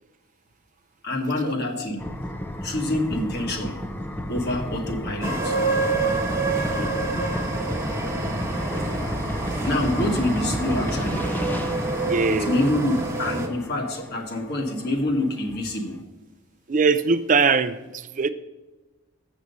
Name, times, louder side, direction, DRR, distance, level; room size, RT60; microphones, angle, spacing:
voice 1, 1.0-2.0 2.6-3.8 4.3-5.6 9.6-11.2 12.3-16.0, left 1 dB, 50° left, 3 dB, 1.5 m, -26 dB
sound 1, 2.0-14.7, equal, 10° left, 0.5 m, -32 dB
sound 2, 5.2-13.5, right 3 dB, 15° right, 1.1 m, -27 dB
voice 2, 12.0-12.6 16.7-18.3, right 4 dB, 40° right, 12 dB, 0.5 m, -21 dB
8.2 x 6.2 x 6.7 m, 1.1 s
head